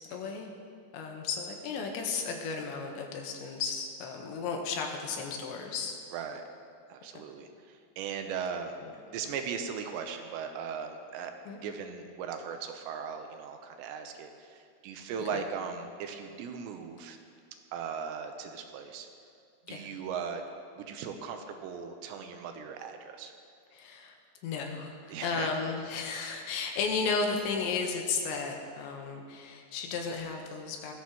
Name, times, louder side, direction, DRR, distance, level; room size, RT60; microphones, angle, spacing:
voice 1, 0.1-0.5 0.9-6.0 7.2-7.3 11.5-11.6 15.2-15.4 19.7-19.9 23.7-24.2 24.4-30.9, left 5 dB, 85° left, 2 dB, 3.4 m, -34 dB
voice 2, 6.1-6.4 6.9-8.7 9.1-11.3 11.6-17.2 17.7-19.1 19.7-20.4 20.8-23.3 25.1-25.6, right 6 dB, 85° right, 5 dB, 3.0 m, -38 dB
19.0 x 13.5 x 3.0 m, 2.3 s
omnidirectional pair, 5.2 m